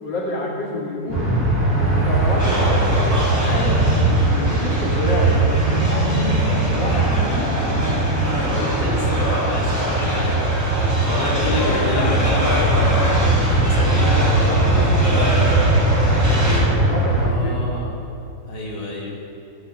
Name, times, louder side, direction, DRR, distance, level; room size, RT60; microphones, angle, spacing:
voice 1, 0.0-1.4 1.8-3.8 4.4-6.4 6.7-7.6 11.2-12.6 14.1-14.3 14.7-15.5 16.5-17.7, left 1 dB, 80° left, -5 dB, 3.1 m, -28 dB
sound 1, 1.1-17.3, right 2 dB, 30° right, 4.6 m, -20 dB
sound 2, 2.1-10.2, left 1 dB, 70° right, 5.6 m, -28 dB
sound 3, 2.4-16.6, equal, 10° right, 3.8 m, -26 dB
voice 2, 2.5-3.0 8.4-10.4 11.0-12.7 13.1-13.4 13.6-14.1 17.2-18.0 18.5-19.2, left 2 dB, 60° left, -3 dB, 3.3 m, -29 dB
14.0 x 9.3 x 9.2 m, 2.7 s
omnidirectional pair, 1.9 m